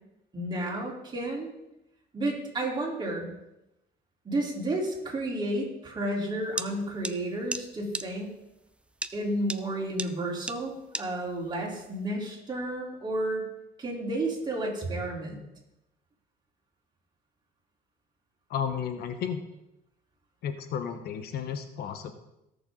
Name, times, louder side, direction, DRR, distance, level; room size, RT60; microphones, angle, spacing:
voice 1, 0.3-1.5 2.1-3.3 4.2-8.3 9.1-13.5 13.8-15.4, right 1 dB, 25° right, -3 dB, 3.8 m, -31 dB
sound 1, 6.6-6.7 7.0-7.1 7.5-7.6 7.9-8.0 9.0-9.1 9.5-9.6 10.0-10.1 10.5-10.6 10.9-11.0, right 2 dB, 5° right, 0.5 m, -32 dB
voice 2, 18.5-19.4 20.4-22.1, left 7 dB, 70° left, 9 dB, 1.1 m, -33 dB
17.5 x 7.0 x 3.9 m, 0.89 s
cardioid pair, 110°, 17 cm